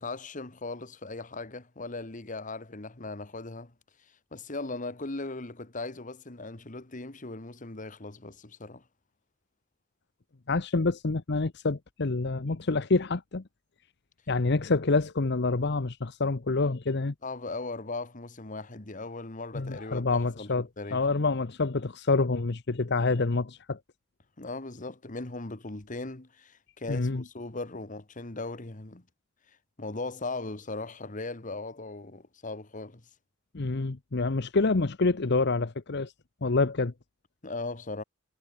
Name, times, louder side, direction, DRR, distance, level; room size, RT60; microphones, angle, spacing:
voice 1, 0.0-3.7 4.3-8.8 17.2-21.0 24.4-29.0 29.8-33.0 37.4-38.0, left 3 dB, 40° left, 1.7 m, -38 dB
voice 2, 10.5-13.4 14.3-17.1 19.5-23.8 26.9-27.2 33.5-36.1 36.4-36.9, left 3 dB, 60° left, 0.9 m, -27 dB
head